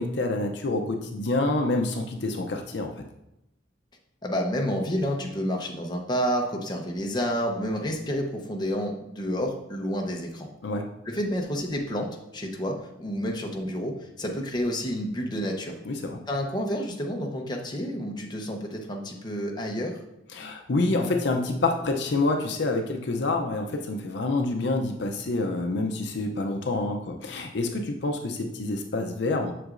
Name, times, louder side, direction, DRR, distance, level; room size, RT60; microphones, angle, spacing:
voice 1, 0.0-2.9 10.6-10.9 15.9-16.2 20.3-29.5, left 2 dB, 65° left, 4 dB, 0.6 m, -27 dB
voice 2, 4.2-10.5 11.0-15.7 16.3-20.0, equal, 25° left, 1 dB, 0.8 m, -29 dB
7.7 x 6.3 x 2.5 m, 0.85 s
head